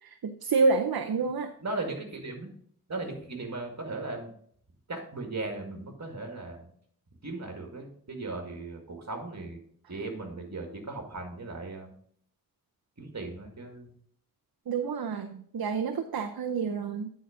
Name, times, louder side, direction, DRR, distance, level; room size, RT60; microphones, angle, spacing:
voice 1, 0.0-1.5 14.7-17.1, right 4 dB, 75° right, 5 dB, 0.7 m, -28 dB
voice 2, 1.6-2.5 2.9-4.3 4.9-6.7 7.2-9.6 9.9-11.9 13.0-13.9, right 2 dB, 50° right, 4 dB, 2.0 m, -37 dB
9.9 x 4.1 x 5.0 m, 0.63 s
wide cardioid pair, 80°, 36 cm